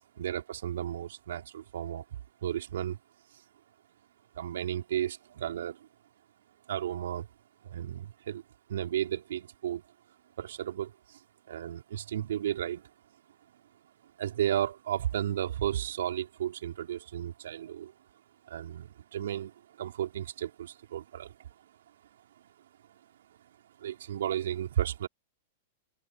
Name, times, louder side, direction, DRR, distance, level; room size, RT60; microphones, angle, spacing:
voice 1, 0.2-2.0 2.4-3.0 4.4-5.8 6.7-7.3 7.6-8.4 8.7-9.8 10.4-10.9 11.5-12.8 14.2-17.9 18.5-19.5 19.8-21.3 23.8-25.1, right 11 dB, 75° right, 4.9 m, -33 dB
hypercardioid pair, 110°, 0 cm